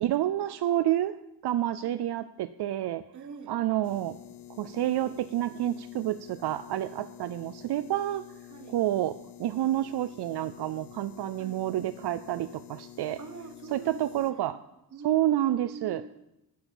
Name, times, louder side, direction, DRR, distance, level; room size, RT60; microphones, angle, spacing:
voice 1, 0.0-1.1 1.4-3.0 3.5-4.2 4.6-8.2 8.7-9.1 9.4-13.2 13.7-14.6 15.0-16.0, right 13 dB, 80° right, 13 dB, 0.5 m, -29 dB
voice 2, 3.1-3.6 8.5-8.8 11.4-11.7 13.2-14.6 14.9-16.1, right 5 dB, 45° right, 9 dB, 1.3 m, -44 dB
sound 1, 3.8-14.3, left 12 dB, 80° left, 1.0 m, -49 dB
11.0 x 9.6 x 7.2 m, 0.90 s
wide cardioid pair, 175°, 39 cm